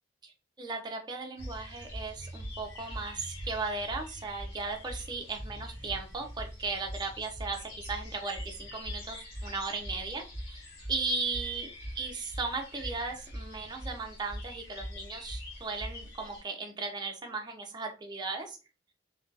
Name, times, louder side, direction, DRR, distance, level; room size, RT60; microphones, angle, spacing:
voice 1, 0.2-10.6 10.9-11.7 11.9-18.6, right 3 dB, 20° right, 3 dB, 0.4 m, -36 dB
sound 1, 1.4-16.4, equal, 55° left, 1.1 m, -42 dB
2.5 x 2.2 x 2.3 m, 0.32 s
head